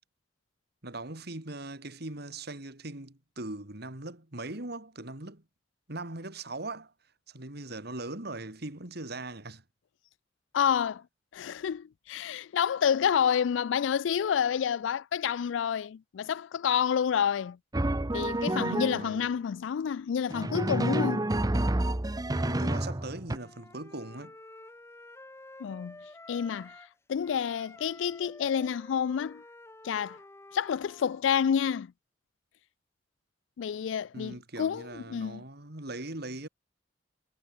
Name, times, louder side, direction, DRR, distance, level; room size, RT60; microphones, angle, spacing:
voice 1, 0.8-5.4 5.9-6.9 7.3-9.6 18.5-19.2 22.3-24.3 34.1-36.5, right 2 dB, 60° right, 3.3 m, -40 dB
voice 2, 10.5-11.0 11.3-17.6 18.1-21.3 25.6-26.0 26.3-26.8 27.1-29.4 29.8-30.2 30.5-31.9 33.6-35.4, left 8 dB, 85° left, 0.4 m, -29 dB
Drum, 17.7-19.2 20.3-23.4, right 1 dB, 20° right, 0.9 m, -29 dB
Wind instrument woodwind instrument, 23.3-26.9 27.2-31.2, left 2 dB, 15° left, 1.1 m, -50 dB
head